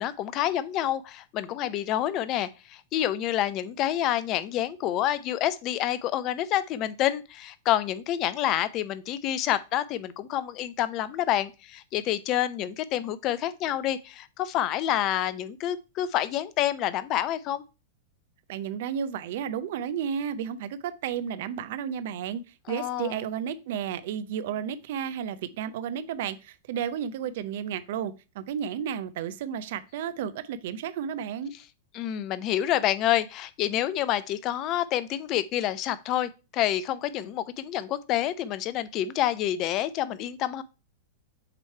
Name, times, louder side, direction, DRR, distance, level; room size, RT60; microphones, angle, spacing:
voice 1, 0.0-17.6 22.7-23.2 31.9-40.6, left 12 dB, 40° left, 0.5 m, -28 dB
voice 2, 18.5-31.5, right 8 dB, 60° right, 0.6 m, -32 dB
7.5 x 3.2 x 4.4 m
hypercardioid pair, 105°, 0 cm